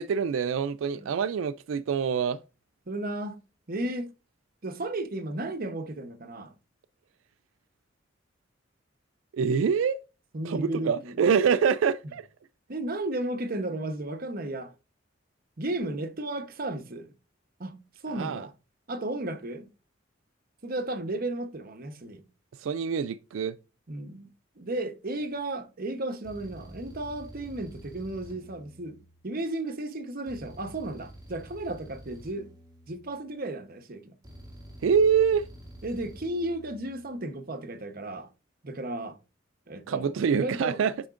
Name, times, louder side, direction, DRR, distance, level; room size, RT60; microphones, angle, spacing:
voice 1, 0.0-2.4 9.3-10.0 10.4-12.3 18.1-18.5 22.6-23.5 34.8-35.5 39.9-40.9, right 6 dB, 90° right, 0.3 m, -25 dB
voice 2, 2.9-3.4 3.7-4.1 4.6-6.5 10.3-11.2 12.7-14.7 15.6-17.1 17.6-17.8 18.0-18.5 18.9-19.7 20.6-22.2 23.9-24.3 24.6-29.0 29.2-32.5 32.9-34.2 35.8-38.3 38.6-39.2 39.7-40.8, right 1 dB, 50° right, 1.0 m, -34 dB
sound 1, 25.2-25.5 26.2-29.5 30.3-33.5 34.2-37.2, equal, 20° right, 2.1 m, -48 dB
8.5 x 5.6 x 2.5 m
head